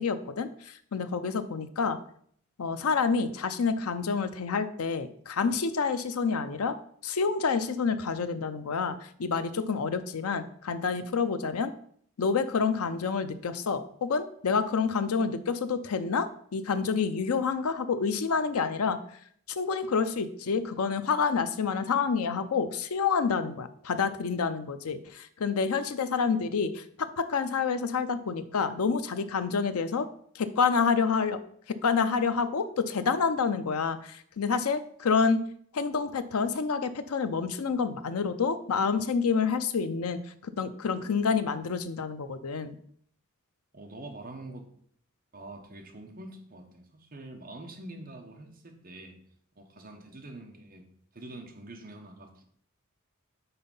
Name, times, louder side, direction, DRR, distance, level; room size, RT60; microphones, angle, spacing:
voice 1, 0.0-2.0 2.6-6.8 7.0-11.7 12.2-19.0 19.5-26.8 27.2-30.1 30.3-31.4 31.7-35.4 35.7-42.7, left 5 dB, 85° left, 11 dB, 0.5 m, -28 dB
voice 2, 43.7-44.7 45.3-49.2 49.6-50.8 51.1-52.4, right 2 dB, 40° right, 2 dB, 1.0 m, -45 dB
5.6 x 4.4 x 5.4 m, 0.63 s
head